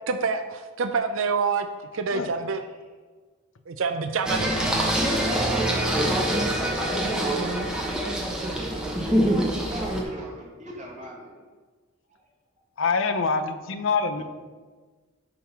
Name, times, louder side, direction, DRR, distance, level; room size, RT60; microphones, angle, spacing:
voice 1, 0.1-1.7 1.9-2.6 3.7-4.5, right 5 dB, 70° right, 7 dB, 0.5 m, -26 dB
Singing, 4.2-10.0, right 1 dB, 5° right, 1.0 m, -25 dB
voice 2, 5.1-6.1 6.3-7.0 7.5-9.3 9.7-11.3, right 1 dB, 35° right, -5 dB, 2.3 m, -40 dB
voice 3, 12.8-14.2, left 4 dB, 65° left, 9 dB, 0.6 m, -25 dB
11.0 x 3.7 x 5.8 m, 1.4 s
head